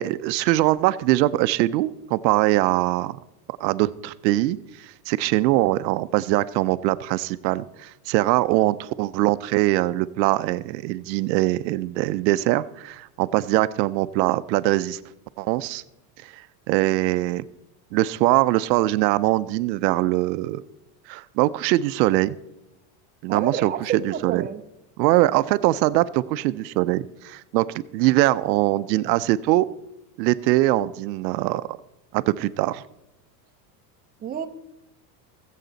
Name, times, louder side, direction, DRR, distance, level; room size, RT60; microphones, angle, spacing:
voice 1, 0.0-3.2 3.5-15.0 15.4-15.8 16.2-16.4 16.7-17.5 17.9-20.6 21.1-22.4 23.2-23.7 24.0-24.4 25.0-27.7 27.9-29.7 30.2-31.6 32.1-32.8, right 17 dB, 85° right, 15 dB, 0.7 m, -22 dB
voice 2, 23.3-24.6 34.2-34.5, right 8 dB, 20° right, 6 dB, 0.7 m, -28 dB
19.0 x 7.6 x 4.0 m, 0.89 s
supercardioid pair, 130°, 50 cm